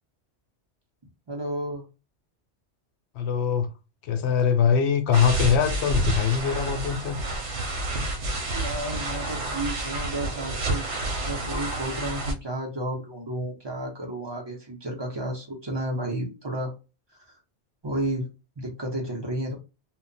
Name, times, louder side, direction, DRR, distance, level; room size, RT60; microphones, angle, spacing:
voice 1, 1.3-1.8 8.5-10.9 11.2-16.7 17.3-17.4 17.8-18.2 18.6-19.6, right 1 dB, 30° right, 0.6 m, -32 dB
voice 2, 3.1-3.7 4.0-7.2, left 7 dB, 70° left, 0.8 m, -22 dB
sound 1, 5.1-12.3, right 2 dB, 80° right, 1.0 m, -29 dB
2.2 x 2.1 x 3.8 m
omnidirectional pair, 1.2 m